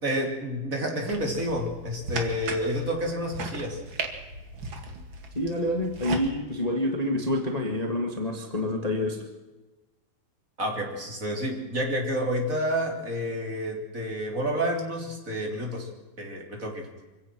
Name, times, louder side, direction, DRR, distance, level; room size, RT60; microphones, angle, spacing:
voice 1, 0.0-3.8 10.6-15.9 16.2-16.9, equal, 20° right, 1 dB, 3.3 m, -29 dB
sound 1, 1.1-6.3, right 3 dB, 40° right, 2.3 m, -37 dB
voice 2, 5.3-9.2, left 1 dB, 35° left, 2 dB, 0.6 m, -27 dB
25.0 x 16.5 x 6.2 m, 1.1 s
omnidirectional pair, 4.3 m